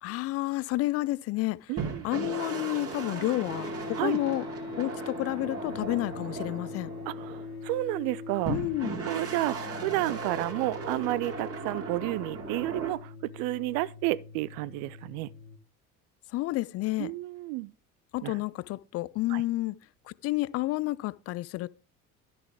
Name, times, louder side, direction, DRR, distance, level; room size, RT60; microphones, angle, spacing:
voice 1, 0.0-1.7 2.0-4.4 4.8-6.9 8.5-9.0 16.3-17.1 18.1-19.8 20.1-21.7, left 18 dB, 35° left, 0.4 m, -30 dB
voice 2, 1.7-2.1 4.0-4.2 7.1-8.6 9.1-9.6 9.8-15.3 17.0-17.7 18.2-18.3 19.3-19.4, right 18 dB, 50° right, 0.6 m, -31 dB
sound 1, 1.8-7.7 8.4-12.9, right 5 dB, 30° right, 2.6 m, -37 dB
sound 2, 3.5-15.6, left 4 dB, 80° left, 0.7 m, -42 dB
12.5 x 6.8 x 3.4 m
figure-of-eight pair, 55°, 43 cm